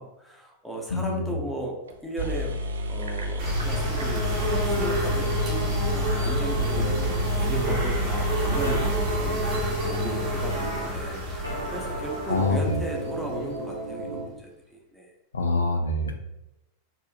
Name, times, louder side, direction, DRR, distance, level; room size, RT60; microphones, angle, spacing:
voice 1, 0.0-2.5 2.9-9.4 9.8-15.1, right 1 dB, ahead, -2 dB, 0.9 m, -36 dB
voice 2, 0.9-1.3 12.3-12.8 15.3-16.1, left 2 dB, 70° left, 5 dB, 0.6 m, -25 dB
sound 1, 1.9-2.0 2.2-10.0, equal, 70° right, 0.4 m, -29 dB
sound 2, 3.4-14.0, equal, 35° right, 1.5 m, -29 dB
sound 3, 6.8-7.1 8.6-8.9 10.5-10.9 11.4-14.3, right 1 dB, 90° right, 1.1 m, -34 dB
4.5 x 3.2 x 2.5 m, 0.90 s
figure-of-eight pair, 90°, 0 cm